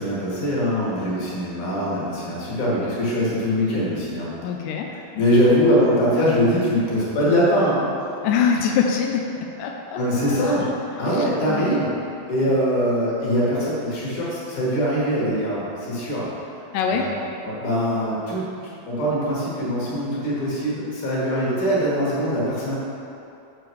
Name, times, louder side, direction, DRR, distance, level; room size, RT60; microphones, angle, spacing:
voice 1, 0.0-4.3 5.1-7.8 10.0-10.7 11.0-11.9 12.3-16.3 16.9-17.1 17.4-18.5 18.8-22.8, equal, 55° left, -7 dB, 3.0 m, -22 dB
voice 2, 4.4-5.0 8.2-10.0 10.2-10.6 11.0-11.6 16.7-17.2, left 6 dB, 85° left, 1 dB, 1.9 m, -24 dB
7.1 x 6.8 x 4.6 m, 2.7 s
omnidirectional pair, 4.3 m